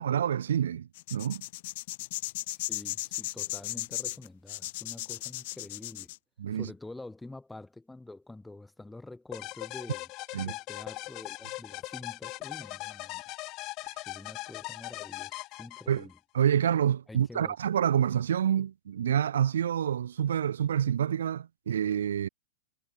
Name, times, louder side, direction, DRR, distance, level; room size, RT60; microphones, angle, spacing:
voice 1, 0.0-1.4 6.4-6.7 10.3-10.5 15.9-16.1 16.3-22.3, right 9 dB, 90° right, 1.1 m, -27 dB
sound 1, 0.9-6.2, left 19 dB, 55° left, 1.8 m, -36 dB
voice 2, 2.6-6.1 6.5-13.2 14.1-16.1 17.1-17.6, left 2 dB, 5° left, 2.0 m, -47 dB
sound 2, 9.3-16.2, left 21 dB, 35° left, 0.6 m, -40 dB
supercardioid pair, 145°, 0 cm